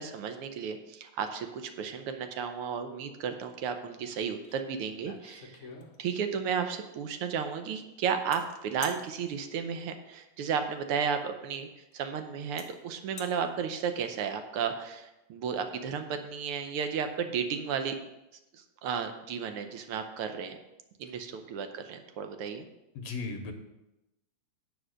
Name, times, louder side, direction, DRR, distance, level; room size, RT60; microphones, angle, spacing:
voice 1, 0.0-5.6 6.0-11.7 11.9-18.0 18.5-20.6 21.0-22.7, right 7 dB, 75° right, 7 dB, 1.3 m, -33 dB
sound 1, 4.4-4.6 4.9-6.3 8.3-8.4 8.8-9.0 10.9-11.0 11.9-12.0 12.6-12.7 13.0-13.3, left 4 dB, 85° left, 0.6 m, -45 dB
voice 2, 22.9-23.5, left 4 dB, 70° left, 4 dB, 2.3 m, -36 dB
10.0 x 5.1 x 6.4 m, 0.93 s
omnidirectional pair, 3.3 m